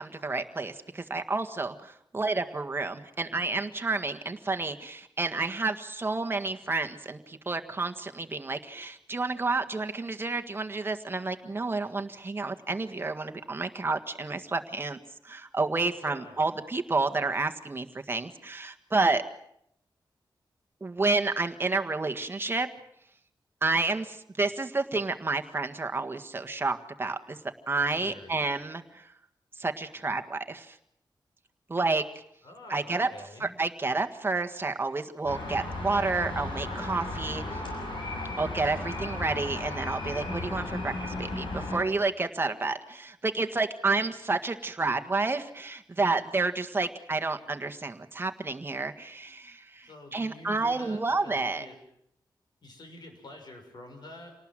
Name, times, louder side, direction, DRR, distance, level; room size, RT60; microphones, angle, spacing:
voice 1, 0.0-15.0 15.2-19.2 20.8-22.7 23.6-27.4 27.7-29.1 29.6-30.8 31.7-32.0 32.7-33.1 33.4-37.6 38.4-51.6, right 3 dB, 30° right, 6 dB, 1.7 m, -30 dB
voice 2, 16.0-16.5 27.7-28.4 32.4-33.6 49.8-51.7 52.6-54.4, left 1 dB, 65° left, 5 dB, 6.3 m, -47 dB
sound 1, 35.2-41.8, left 2 dB, 85° left, 6.7 m, -35 dB
27.5 x 19.0 x 7.6 m, 0.75 s
wide cardioid pair, 110°, 8 cm